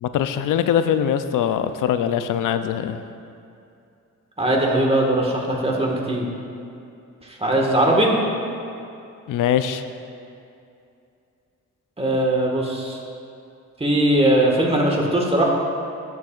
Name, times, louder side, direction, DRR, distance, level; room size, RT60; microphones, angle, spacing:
voice 1, 0.0-3.0 9.3-9.8, left 9 dB, 85° left, 10 dB, 0.5 m, -22 dB
voice 2, 4.4-6.3 7.2-8.1 12.0-13.0 13.8-15.5, right 1 dB, 20° right, -1 dB, 1.5 m, -20 dB
12.5 x 7.2 x 2.4 m, 2.6 s
cardioid pair, 75°, 31 cm